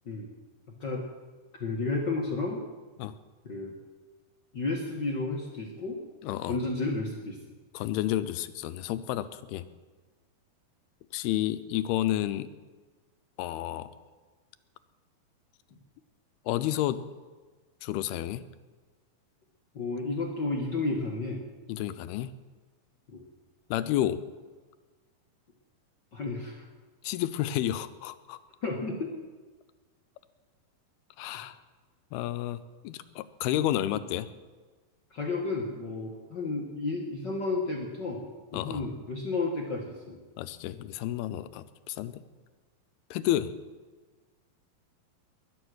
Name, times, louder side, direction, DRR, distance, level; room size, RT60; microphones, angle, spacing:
voice 1, 1.6-2.7 3.4-3.7 4.5-6.0 6.5-7.4 19.7-21.4 23.1-23.2 26.1-26.6 28.6-29.1 35.1-40.2, left 3 dB, 60° left, 0 dB, 1.1 m, -32 dB
voice 2, 6.2-6.6 7.7-9.6 11.1-12.5 13.4-13.9 16.5-17.0 17.8-18.4 21.7-22.3 23.7-24.2 27.0-28.4 31.2-31.6 32.1-34.3 38.5-38.9 40.4-42.3 43.1-43.5, left 13 dB, 90° left, 13 dB, 2.7 m, -30 dB
21.0 x 9.6 x 6.4 m, 1.4 s
omnidirectional pair, 4.4 m